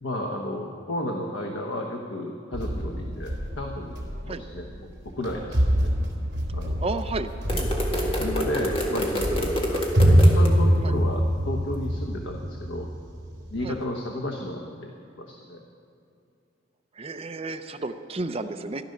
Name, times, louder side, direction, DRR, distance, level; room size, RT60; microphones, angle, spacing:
voice 1, 0.0-4.0 4.2-5.9 6.5-6.8 8.2-12.9 13.5-14.9 15.2-15.6, left 1 dB, 80° left, 2 dB, 1.1 m, -33 dB
sound 1, 2.5-13.8, equal, 60° right, 3.0 m, -25 dB
voice 2, 6.8-7.7 10.8-10.9 13.6-13.8 17.0-18.8, right 2 dB, 30° right, 8 dB, 0.6 m, -32 dB
sound 2, 7.5-10.5, equal, 30° left, 1.8 m, -28 dB
14.5 x 11.5 x 6.6 m, 2.6 s
head